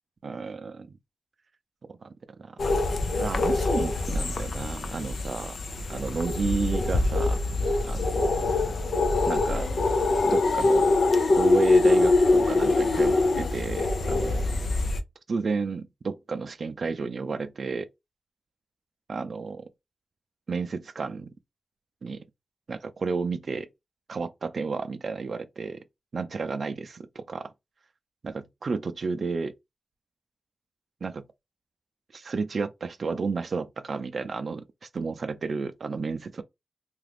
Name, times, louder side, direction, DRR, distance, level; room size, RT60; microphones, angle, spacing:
voice 1, 0.2-1.0 1.9-2.1 2.4-2.6 3.2-5.6 5.9-7.4 7.8-8.3 9.3-9.7 10.2-10.9 11.3-14.5 15.3-17.9 19.1-19.7 20.5-21.3 22.0-22.3 22.7-23.7 24.1-25.8 26.1-27.5 28.2-29.5 31.0-31.3 32.1-36.4, right 4 dB, 65° right, 0.4 m, -32 dB
sound 1, 2.6-15.0, left 2 dB, 75° left, 0.5 m, -24 dB
2.9 x 2.4 x 3.3 m
wide cardioid pair, 95°, 0 cm